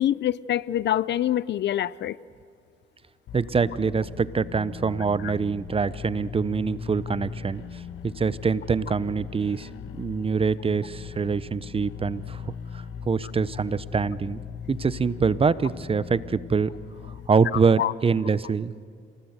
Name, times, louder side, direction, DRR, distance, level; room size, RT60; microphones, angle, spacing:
voice 1, 0.0-2.2 5.2-5.3 17.8-17.9, left 12 dB, 60° left, 0.6 m, -25 dB
sound 1, 3.3-17.3, left 8 dB, 80° left, 1.3 m, -39 dB
voice 2, 3.3-7.6 8.0-14.4 14.7-16.7 17.3-18.7, right 5 dB, 30° right, 0.7 m, -25 dB
27.5 x 19.0 x 8.0 m
cardioid pair, 90°, 20 cm